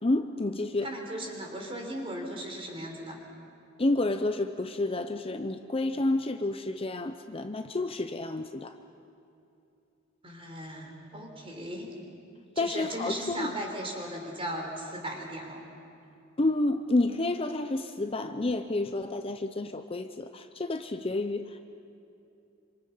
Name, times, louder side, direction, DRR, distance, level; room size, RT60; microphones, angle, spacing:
voice 1, 0.0-0.9 3.8-8.7 12.6-13.5 16.4-21.6, left 2 dB, 30° left, 7 dB, 0.7 m, -29 dB
voice 2, 0.8-3.2 10.2-11.9 12.6-15.6, right 1 dB, 30° right, 1 dB, 3.9 m, -37 dB
26.5 x 26.0 x 5.6 m, 2.7 s
head